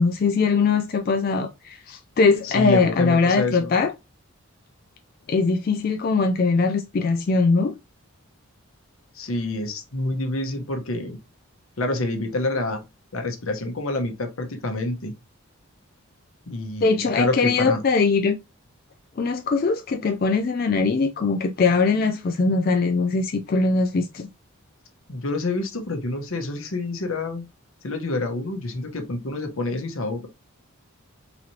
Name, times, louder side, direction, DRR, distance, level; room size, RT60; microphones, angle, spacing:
voice 1, 0.0-3.9 5.3-7.7 16.8-18.4 19.2-24.3, left 4 dB, 40° left, 0.3 m, -21 dB
voice 2, 2.4-3.7 9.1-11.2 11.8-12.8 13.1-15.1 16.5-17.8 25.1-27.4 27.8-30.3, left 2 dB, 75° left, 1.0 m, -27 dB
4.0 x 3.1 x 2.7 m
head